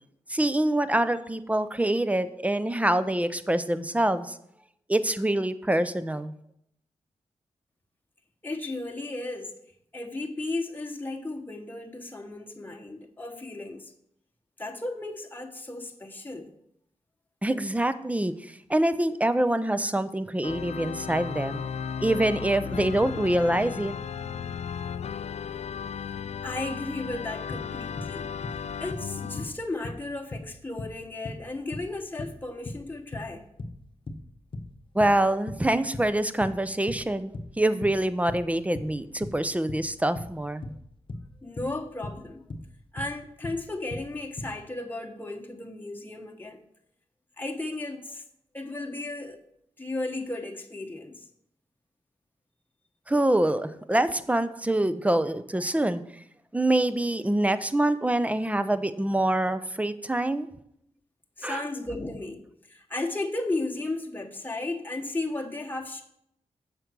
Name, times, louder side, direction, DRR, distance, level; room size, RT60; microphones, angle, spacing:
voice 1, 0.3-4.4 4.9-6.3 17.4-21.6 22.0-23.9 34.9-37.3 37.6-40.6 53.1-56.0 56.5-60.5 61.4-61.6, right 1 dB, 10° right, 13 dB, 0.7 m, -25 dB
voice 2, 8.4-9.5 9.9-13.9 14.6-16.5 26.4-28.3 28.8-33.4 41.4-42.4 42.9-46.6 47.4-48.2 48.5-49.4 49.8-51.3 61.4-66.0, left 2 dB, 15° left, 2 dB, 1.2 m, -34 dB
Organ, 20.4-29.5, left 7 dB, 65° left, 0.5 m, -35 dB
sound 1, 27.1-28.1 28.4-29.6 29.8-35.6 35.9-43.1 43.4-44.5, left 2 dB, 45° left, 1.0 m, -38 dB
7.7 x 5.3 x 6.1 m, 0.73 s
cardioid pair, 50°, 12 cm